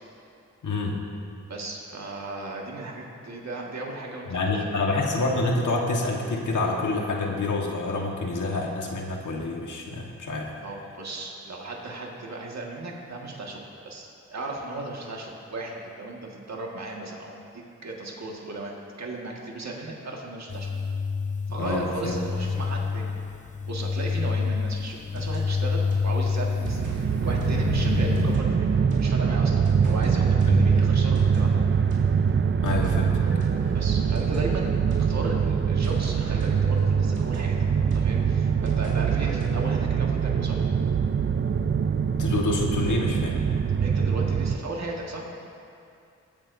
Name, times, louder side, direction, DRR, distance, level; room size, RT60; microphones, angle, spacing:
voice 1, 0.6-1.0 4.3-10.5 21.6-22.2 30.5-30.7 32.6-33.2 42.2-43.4, left 2 dB, 80° left, 0 dB, 1.5 m, -27 dB
voice 2, 1.5-4.6 10.6-18.7 19.0-20.7 21.5-23.1 23.7-28.7 29.0-31.6 33.7-34.7 35.1-37.6 37.9-40.6 43.8-45.3, right 2 dB, 60° right, -1 dB, 1.8 m, -36 dB
sound 1, 20.5-28.4, left 5 dB, 25° left, 0.4 m, -28 dB
sound 2, 24.8-35.4 35.8-39.8, right 1 dB, 90° right, 2.3 m, -44 dB
sound 3, 26.6-44.6, right 6 dB, 40° right, 0.5 m, -23 dB
21.0 x 8.9 x 2.7 m, 2.5 s
cardioid pair, 65°, 30 cm